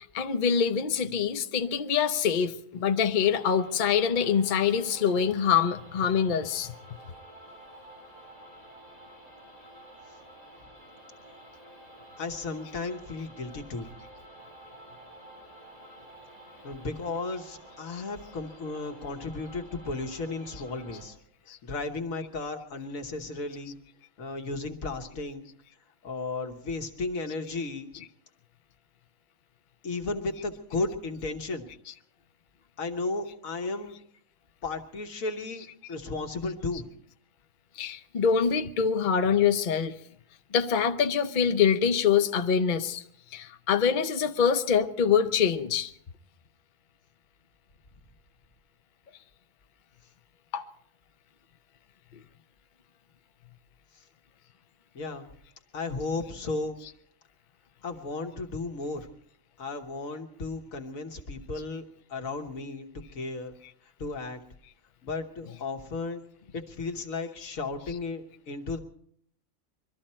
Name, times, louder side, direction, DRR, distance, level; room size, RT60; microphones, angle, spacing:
voice 1, 0.0-6.7 17.9-18.0 21.5-21.6 31.9-32.0 35.6-35.7 37.8-39.9 40.5-43.0 43.3-45.9 50.5-50.6 56.8-56.9 67.9-68.0, left 7 dB, 45° left, 0.7 m, -25 dB
sound 1, 3.2-21.0, right 1 dB, 65° right, 7.5 m, -50 dB
voice 2, 12.2-13.9 16.6-21.2 21.6-23.8 24.2-25.4 26.0-27.9 29.8-31.7 32.8-34.0 34.6-36.9 55.0-55.3 55.7-56.8 57.8-59.1 59.6-61.8 62.1-63.6 64.0-64.4 65.0-66.2 66.5-68.8, left 3 dB, 85° left, 1.7 m, -34 dB
23.5 x 13.0 x 4.4 m
omnidirectional pair, 1.4 m